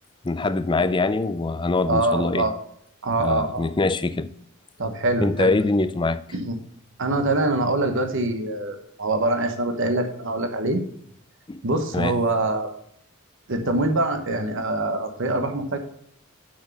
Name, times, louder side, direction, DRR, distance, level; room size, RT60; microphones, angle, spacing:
voice 1, 0.2-2.5 3.2-4.3 5.2-6.2 11.5-11.6 11.9-12.2, left 3 dB, 20° left, 0.5 m, -23 dB
voice 2, 1.9-2.6 3.0-3.7 4.8-5.7 6.3-6.5 7.0-10.8 11.6-12.7 13.5-15.8, right 2 dB, 60° right, 1.1 m, -24 dB
6.4 x 6.3 x 7.0 m
head